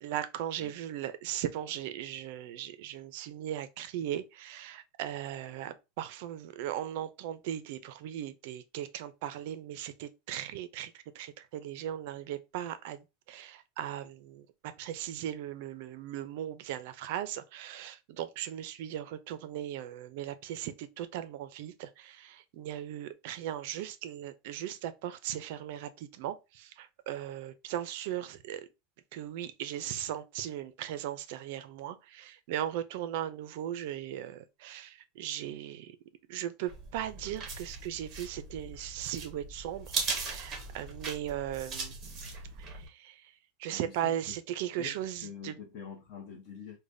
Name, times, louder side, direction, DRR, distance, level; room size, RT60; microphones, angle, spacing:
voice 1, 0.0-28.7 29.1-36.0 36.3-43.3 43.6-45.6, right 11 dB, 50° right, 0.4 m, -38 dB
sound 1, 36.7-42.9, right 4 dB, 20° right, 0.7 m, -39 dB
voice 2, 43.7-44.4 44.8-46.8, left 6 dB, 40° left, 0.7 m, -45 dB
4.9 x 2.1 x 2.5 m
supercardioid pair, 180°, 0 cm